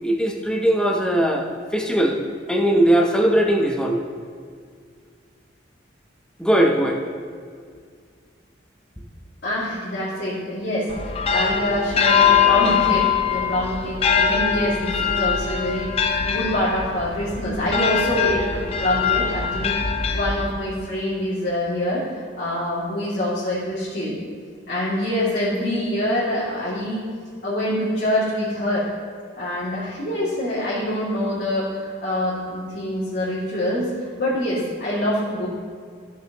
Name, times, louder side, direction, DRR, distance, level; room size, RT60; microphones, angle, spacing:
voice 1, 0.0-2.2 2.5-4.0 6.4-7.0, right 1 dB, 5° left, 1 dB, 0.8 m, -19 dB
voice 2, 9.4-10.9 11.3-19.8 20.1-24.1 24.7-27.1 27.4-28.9 29.4-33.9 34.2-35.5, left 1 dB, 55° left, -11 dB, 2.4 m, -25 dB
sound 1, 10.9-20.8, left 7 dB, 30° left, 0.5 m, -22 dB
14.5 x 6.9 x 3.0 m, 2.1 s
head